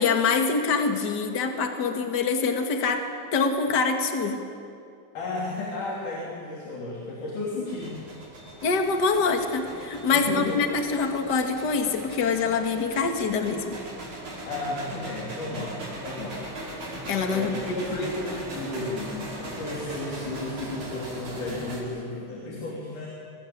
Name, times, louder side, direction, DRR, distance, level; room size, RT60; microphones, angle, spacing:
voice 1, 0.0-3.0 3.3-4.4 8.6-13.8 17.1-18.1, left 4 dB, 35° left, 5 dB, 2.2 m, -25 dB
voice 2, 5.1-8.0 10.1-10.6 14.5-16.4 17.3-23.1, left 2 dB, 85° left, -3 dB, 5.0 m, -33 dB
sound 1, 7.7-21.8, right 1 dB, 70° right, 6.8 m, -39 dB
27.5 x 20.0 x 8.8 m, 2.5 s
omnidirectional pair, 3.5 m